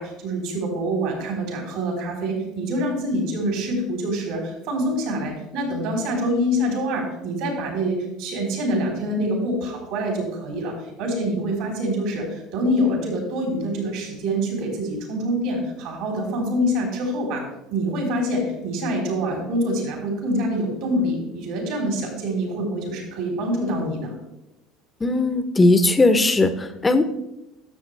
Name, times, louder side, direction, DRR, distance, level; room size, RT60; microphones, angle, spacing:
voice 1, 0.0-17.4 17.7-24.1, equal, 70° right, 0 dB, 3.8 m, -25 dB
voice 2, 25.0-27.0, left 2 dB, 20° left, 10 dB, 0.9 m, -18 dB
13.0 x 6.9 x 3.4 m, 0.90 s
hypercardioid pair, 80°, 0 cm